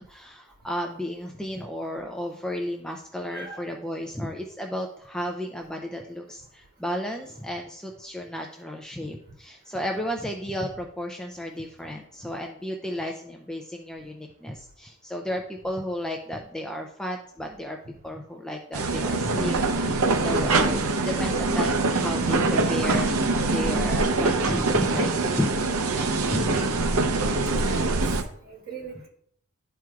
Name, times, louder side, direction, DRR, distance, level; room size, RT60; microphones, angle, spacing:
voice 1, 0.0-17.8 18.0-25.6 25.9-26.6, equal, 5° left, 2 dB, 0.4 m, -33 dB
voice 2, 3.3-3.7 26.6-27.0 27.5-28.0 28.5-29.1, right 4 dB, 40° right, -3 dB, 1.8 m, -39 dB
sound 1, 18.7-28.2, right 3 dB, 80° right, 0.6 m, -24 dB
11.5 x 4.5 x 2.4 m, 0.66 s
head